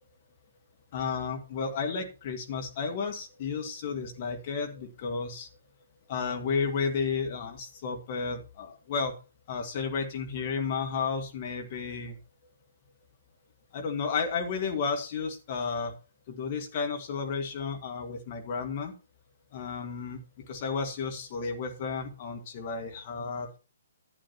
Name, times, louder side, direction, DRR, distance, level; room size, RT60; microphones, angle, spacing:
voice 1, 0.9-5.5 6.1-9.2 9.5-12.2 13.7-15.9 16.3-18.9 19.5-20.2 20.5-23.5, left 5 dB, 40° left, 4 dB, 1.6 m, -32 dB
11.5 x 9.6 x 2.9 m, 0.32 s
figure-of-eight pair, 125°, 0 cm